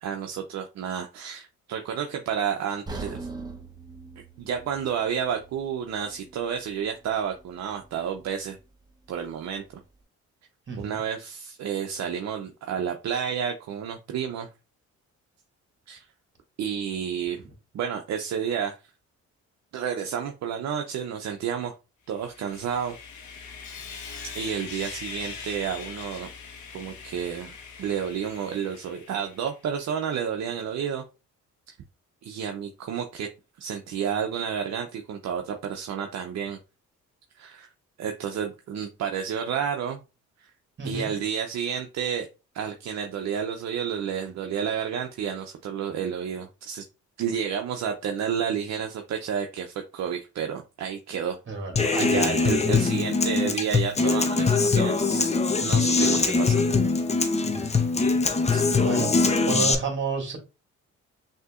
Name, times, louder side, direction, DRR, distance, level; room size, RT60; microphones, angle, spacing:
voice 1, 0.0-3.2 4.4-8.6 9.1-9.8 10.8-14.5 15.9-16.0 16.6-17.4 17.7-18.8 19.7-21.7 22.1-23.0 24.3-26.3 26.7-31.0 31.7-31.8 32.2-33.3 33.6-36.6 37.4-37.7 38.0-40.0 40.4-40.5 40.8-42.3 42.5-46.8 47.2-51.4 52.0-55.3 55.6-56.6 58.5-58.7, right 8 dB, 60° right, 0.7 m, -30 dB
sound 1, 2.9-6.9 7.3-7.4 8.0-8.1, right 3 dB, 15° right, 1.0 m, -41 dB
voice 2, 10.7-11.0 17.4-17.5 40.8-41.1 51.5-52.6 56.1-56.4 57.4-57.7 58.3-58.4 58.8-59.2 59.5-60.4, right 4 dB, 40° right, 2.1 m, -31 dB
Sawing, 22.1-29.6, left 5 dB, 75° left, 1.2 m, -41 dB
Human voice / Acoustic guitar, 51.8-59.7, left 4 dB, 20° left, 0.6 m, -22 dB
6.4 x 2.8 x 2.4 m
cardioid pair, 90°, 30 cm